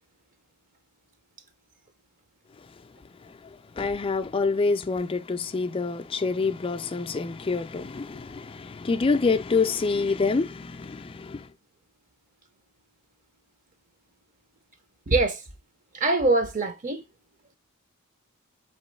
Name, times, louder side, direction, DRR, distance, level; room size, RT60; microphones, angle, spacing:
voice 1, 3.2-11.5, left 4 dB, 25° left, 0.3 m, -27 dB
voice 2, 15.1-15.4 15.9-17.0, right 2 dB, 35° right, 0.5 m, -23 dB
4.7 x 3.0 x 3.1 m
head